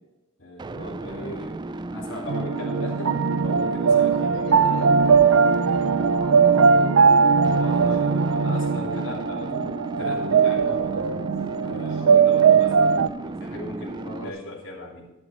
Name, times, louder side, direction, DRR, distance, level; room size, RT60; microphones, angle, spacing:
voice 1, 0.4-3.2 3.4-5.1 7.6-10.9 11.6-15.1, left 2 dB, 65° left, -6 dB, 3.2 m, -38 dB
sound 1, 0.6-14.3, right 2 dB, 20° right, 0.3 m, -35 dB
voice 2, 1.1-1.5 3.8-8.7 10.6-11.3 11.6-12.0 14.0-14.3, left 1 dB, 90° left, 0 dB, 3.9 m, -41 dB
sound 2, 2.3-13.1, right 5 dB, 80° right, 0.5 m, -19 dB
11.5 x 10.5 x 4.2 m, 1.0 s
head